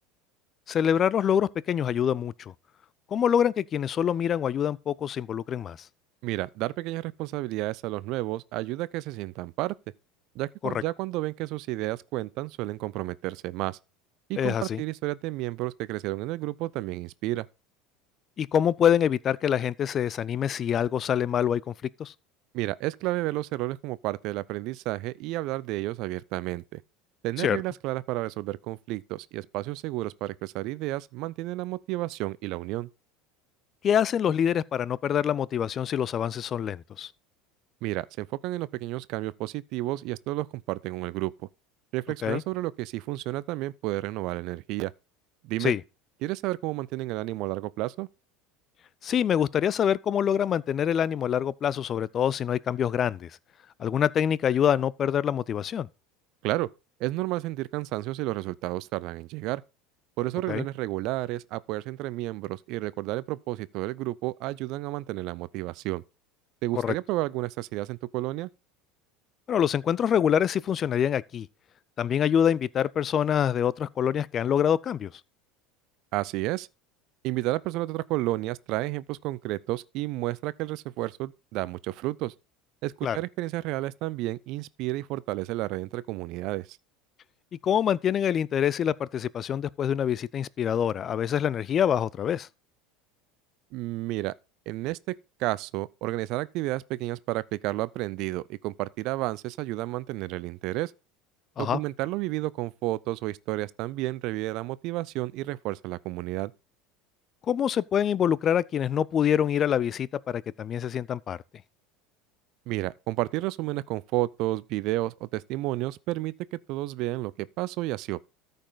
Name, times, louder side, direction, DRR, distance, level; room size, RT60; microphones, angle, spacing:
voice 1, 0.7-2.3 3.1-5.8 10.6-10.7 14.4-14.8 18.4-21.6 22.0-22.1 27.4-27.6 33.8-37.1 42.2-42.4 45.6-45.8 49.0-53.3 53.8-55.9 60.5-60.6 66.8-66.9 69.5-71.5 72.0-75.1 83.0-83.2 87.6-92.5 101.6-101.8 107.5-111.4, left 9 dB, 40° left, 0.5 m, -25 dB
voice 2, 6.2-9.7 10.4-13.8 14.3-17.5 22.5-26.8 27.2-32.9 37.8-41.3 41.9-44.9 45.4-45.7 46.2-48.1 56.4-56.7 57.0-59.6 60.2-66.0 66.6-68.5 76.1-76.7 77.2-82.3 82.8-86.8 93.7-94.3 94.7-95.1 95.4-100.9 101.6-106.5 112.7-118.2, right 18 dB, 55° right, 0.5 m, -31 dB
13.5 x 5.3 x 3.9 m
hypercardioid pair, 75°, 0 cm